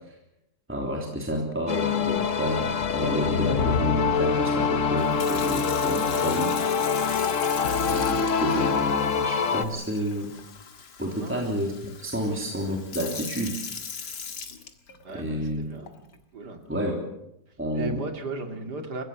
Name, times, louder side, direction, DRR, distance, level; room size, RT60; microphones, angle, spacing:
voice 1, 0.7-6.5 7.9-10.3 11.0-13.6 15.1-15.7 16.7-17.0 17.6-18.0, equal, 5° right, 0 dB, 3.3 m, -30 dB
sound 1, 1.7-9.6, left 6 dB, 50° left, 1.5 m, -25 dB
Sink (filling or washing) / Fill (with liquid), 5.0-15.2 15.9-16.1, left 6 dB, 85° left, 2.4 m, -39 dB
voice 2, 15.0-15.9 16.3-16.6 17.7-19.0, right 2 dB, 75° right, 5 dB, 3.1 m, -36 dB
30.0 x 16.0 x 7.3 m, 0.84 s
omnidirectional pair, 1.8 m